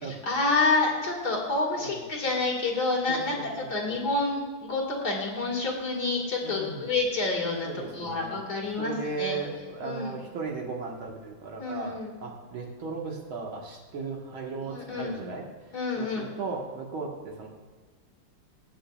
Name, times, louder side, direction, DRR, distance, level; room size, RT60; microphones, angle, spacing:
voice 1, 0.1-9.4 9.8-10.2 11.6-12.1 14.6-15.2 15.7-16.3, left 3 dB, 50° left, -2 dB, 2.5 m, -28 dB
voice 2, 3.1-3.4 3.9-4.0 6.4-6.8 7.6-8.4 8.8-12.0 12.2-15.4 16.0-17.5, right 4 dB, 75° right, -1 dB, 2.4 m, -36 dB
20.5 x 7.6 x 2.4 m, 1.4 s
omnidirectional pair, 2.3 m